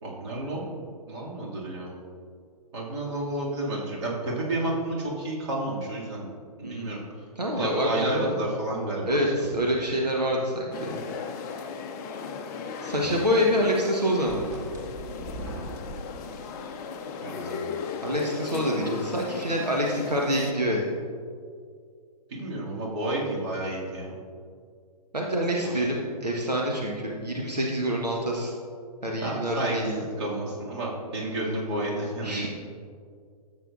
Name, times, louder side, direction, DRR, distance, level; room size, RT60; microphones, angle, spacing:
voice 1, 0.0-1.9 2.7-6.3 6.6-7.0 7.5-9.3 17.2-17.7 22.3-24.1 25.6-25.9 27.5-27.7 29.2-32.5, right 1 dB, 45° right, -4 dB, 2.4 m, -31 dB
voice 2, 7.4-8.3 9.1-11.0 12.8-14.4 17.4-17.6 18.0-21.0 25.1-28.5 29.0-30.0 32.2-32.5, equal, 85° right, -2 dB, 1.3 m, -26 dB
sound 1, 10.7-20.5, left 5 dB, 25° left, 0.6 m, -36 dB
sound 2, 14.3-16.0, right 1 dB, 15° right, 1.7 m, -38 dB
13.5 x 8.0 x 2.6 m, 2.2 s
figure-of-eight pair, 125°, 20 cm